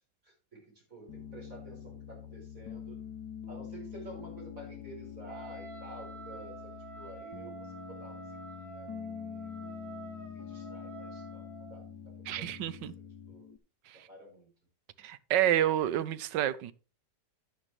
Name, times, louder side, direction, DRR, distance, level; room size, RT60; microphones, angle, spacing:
voice 1, 0.2-3.0 3.5-8.3 8.5-9.5 10.2-11.5 11.7-13.5 13.9-14.5, right 2 dB, 50° right, 5.3 m, -51 dB
Piano, 1.1-13.6, left 8 dB, 75° left, 1.4 m, -45 dB
Wind instrument woodwind instrument, 5.3-11.9, right 5 dB, 15° right, 2.2 m, -48 dB
voice 2, 12.3-12.9 15.0-16.7, right 11 dB, 85° right, 1.4 m, -29 dB
10.5 x 9.9 x 3.2 m
omnidirectional pair, 1.9 m